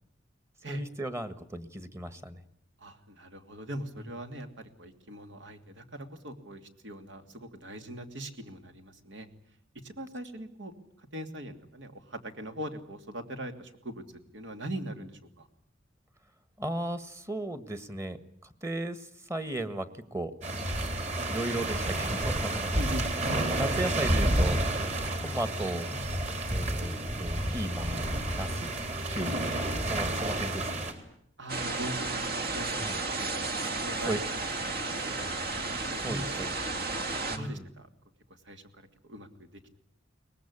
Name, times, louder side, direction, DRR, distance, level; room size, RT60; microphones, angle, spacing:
voice 1, 0.7-2.4 16.6-18.2 18.6-19.0 19.3-20.3 21.3-22.8 23.5-24.6 25.2-25.9 26.5-28.7 29.1-30.7 32.8-33.0 34.1-34.2 36.0-36.5 37.3-37.6, right 1 dB, 15° right, 12 dB, 1.6 m, -35 dB
voice 2, 2.8-9.3 9.7-10.7 11.0-15.5 22.7-23.1 31.4-34.2 34.9-35.2 35.8-36.9 37.3-37.9 38.4-39.8, right 1 dB, 70° right, 7 dB, 2.9 m, -41 dB
sound 1, 20.4-30.9, right 1 dB, 40° right, 3.8 m, -30 dB
sound 2, 31.5-37.4, right 3 dB, 55° right, 2.2 m, -33 dB
23.0 x 20.0 x 9.9 m, 0.68 s
head